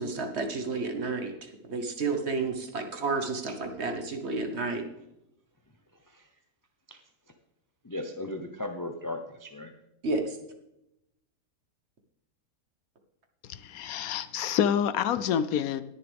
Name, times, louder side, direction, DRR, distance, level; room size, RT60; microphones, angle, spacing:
voice 1, 0.0-1.3 1.7-4.8 10.0-10.2, right 3 dB, 50° right, 5 dB, 1.4 m, -31 dB
voice 2, 7.8-9.7, left 1 dB, 25° left, 5 dB, 0.4 m, -37 dB
voice 3, 13.5-15.8, left 9 dB, 75° left, 14 dB, 1.0 m, -27 dB
20.0 x 6.9 x 3.5 m, 0.86 s
omnidirectional pair, 1.6 m